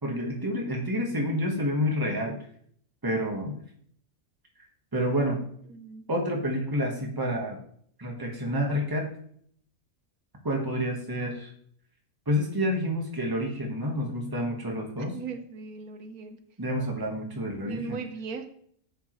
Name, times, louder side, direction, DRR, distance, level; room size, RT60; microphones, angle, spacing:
voice 1, 0.0-2.5 3.0-3.6 4.9-5.4 6.1-7.6 8.0-9.1 10.4-11.5 12.3-15.1 16.6-18.0, equal, 15° right, 1 dB, 1.3 m, -29 dB
voice 2, 5.7-6.0 15.0-16.4 17.7-18.5, right 4 dB, 85° right, 7 dB, 1.4 m, -38 dB
8.2 x 7.3 x 3.1 m, 0.62 s
omnidirectional pair, 1.5 m